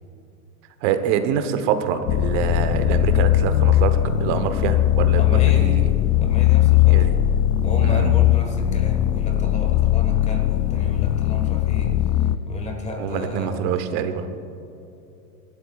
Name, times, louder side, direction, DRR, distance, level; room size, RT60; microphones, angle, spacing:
voice 1, 0.8-5.9 6.9-7.1 7.8-8.1 13.0-14.3, right 8 dB, 50° right, 9 dB, 1.1 m, -25 dB
sound 1, 2.1-12.4, left 14 dB, 70° left, 0.6 m, -19 dB
voice 2, 5.2-5.8 6.2-7.1 7.6-13.7, left 2 dB, 15° left, 3 dB, 1.5 m, -32 dB
27.0 x 12.5 x 2.4 m, 2.8 s
supercardioid pair, 150°, 46 cm